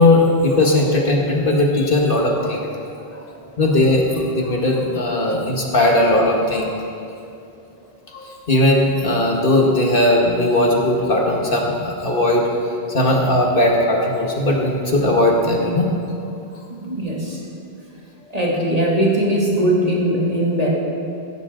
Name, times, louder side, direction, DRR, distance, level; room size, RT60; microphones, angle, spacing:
voice 1, 0.0-2.7 3.1-3.2 3.6-6.8 8.1-12.5 12.9-15.9, left 1 dB, 60° left, -1 dB, 1.9 m, -18 dB
voice 2, 16.8-17.4 18.3-20.7, right 1 dB, 40° right, -4 dB, 2.6 m, -20 dB
15.5 x 15.5 x 3.8 m, 2.6 s
omnidirectional pair, 1.0 m